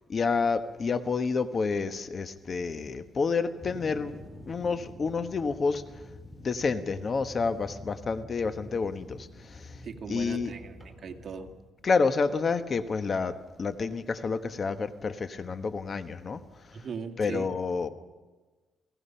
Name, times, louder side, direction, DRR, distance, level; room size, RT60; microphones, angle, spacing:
voice 1, 0.1-4.2 4.5-5.8 6.4-9.7 10.1-10.5 11.8-13.3 13.6-16.4 17.2-17.9, left 4 dB, 40° left, 10 dB, 1.3 m, -29 dB
sound 1, 3.6-11.5, left 1 dB, 5° right, 4.1 m, -47 dB
voice 2, 9.8-11.5 16.7-17.5, right 6 dB, 50° right, 6 dB, 2.1 m, -39 dB
29.5 x 17.5 x 5.7 m, 1.3 s
cardioid pair, 90°, 0 cm